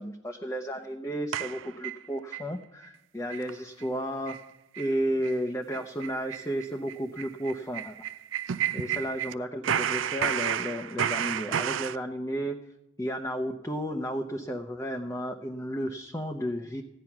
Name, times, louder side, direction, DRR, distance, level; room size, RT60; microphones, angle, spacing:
voice 1, 0.0-4.4 4.8-8.0 8.7-12.6 13.0-16.8, equal, 15° left, 2 dB, 0.7 m, -33 dB
sound 1, 1.3-2.5 2.8-2.9 3.3-3.5 3.8-3.9 4.3-4.4 4.7-4.9 5.2-5.4 5.7-9.3 9.6-12.0, right 9 dB, 80° right, 0.4 m, -31 dB
15.5 x 10.0 x 5.9 m, 0.95 s
head